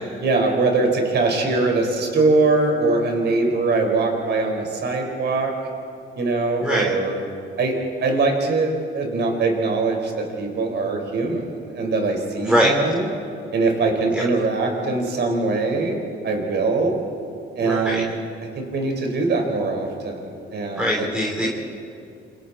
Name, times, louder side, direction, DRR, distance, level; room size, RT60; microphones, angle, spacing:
voice 1, 0.2-5.5 6.1-7.2 7.6-13.1 13.5-16.0 16.2-17.0 17.5-18.1 18.6-21.1 21.4-21.5, right 3 dB, 60° right, 2 dB, 4.8 m, -22 dB
voice 2, 6.6-6.9 12.4-12.7 14.1-14.2 17.6-18.0 20.8-21.5, equal, 5° right, -3 dB, 3.3 m, -22 dB
28.0 x 25.5 x 4.3 m, 2.5 s
cardioid pair, 90°, 20 cm